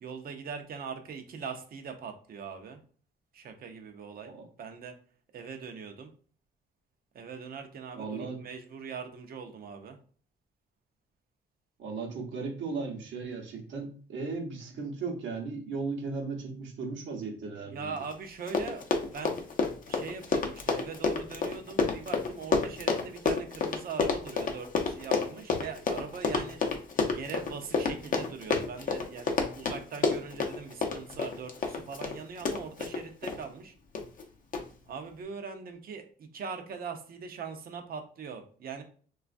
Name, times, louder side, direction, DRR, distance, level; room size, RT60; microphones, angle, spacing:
voice 1, 0.0-2.8 3.3-4.3 4.6-4.9 5.3-6.1 7.1-10.0 17.6-18.8 19.1-19.4 19.9-33.7 34.9-38.8, right 6 dB, 50° right, 5 dB, 0.6 m, -41 dB
voice 2, 7.9-8.4 11.8-17.9, right 4 dB, 70° right, 2 dB, 0.8 m, -36 dB
Run, 18.1-18.2 18.4-33.4 34.0-34.2 34.5-34.6, left 4 dB, 45° left, 0.6 m, -29 dB
3.0 x 2.3 x 2.5 m, 0.43 s
cardioid pair, 90°, 20 cm